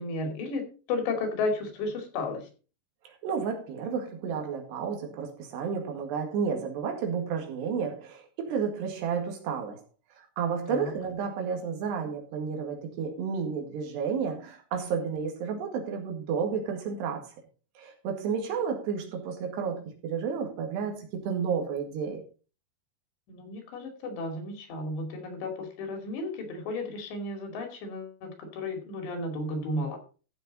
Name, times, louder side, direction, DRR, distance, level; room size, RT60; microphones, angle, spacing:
voice 1, 0.0-2.5 10.7-10.9 23.3-30.0, left 2 dB, 85° left, 4 dB, 4.8 m, -33 dB
voice 2, 3.1-9.8 10.1-17.3 17.8-22.2, right 6 dB, 75° right, 3 dB, 4.1 m, -31 dB
14.0 x 6.7 x 4.1 m, 0.36 s
omnidirectional pair, 4.9 m